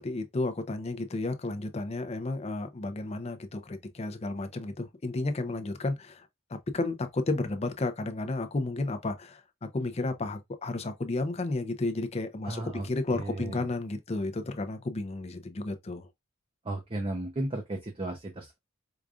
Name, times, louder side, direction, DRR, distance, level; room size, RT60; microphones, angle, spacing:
voice 1, 0.0-16.1, left 2 dB, 30° left, 0.5 m, -32 dB
voice 2, 12.4-13.7 16.6-18.6, right 2 dB, 25° right, 0.6 m, -35 dB
4.9 x 2.4 x 2.4 m
head